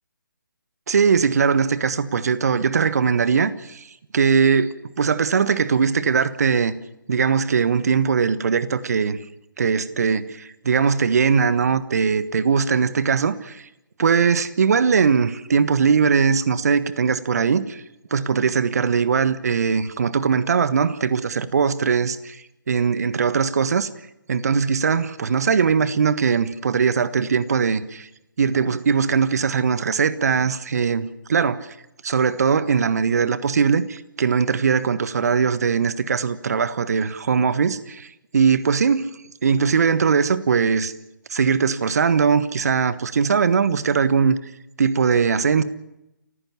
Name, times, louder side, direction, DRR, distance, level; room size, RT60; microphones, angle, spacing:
voice 1, 0.9-3.8 4.1-6.7 7.1-9.2 9.6-13.6 14.0-17.8 18.1-22.4 22.7-23.9 24.3-28.1 28.4-31.6 32.0-38.1 38.3-39.1 39.4-40.9 41.3-44.4 44.8-45.6, right 6 dB, 50° right, 1.5 m, -20 dB
29.5 x 15.0 x 7.3 m
figure-of-eight pair, 145°, 11 cm